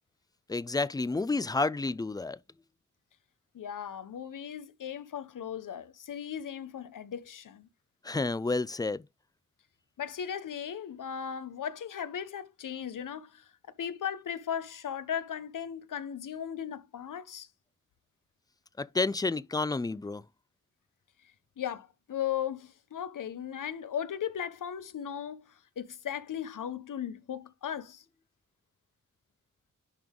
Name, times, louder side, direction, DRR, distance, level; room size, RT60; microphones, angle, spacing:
voice 1, 0.5-2.4 8.0-9.0 18.8-20.2, left 3 dB, 15° left, 0.4 m, -30 dB
voice 2, 3.5-7.7 10.0-13.5 13.8-17.5 21.6-28.0, left 9 dB, 80° left, 0.9 m, -37 dB
10.5 x 3.6 x 3.7 m
cardioid pair, 70°, 31 cm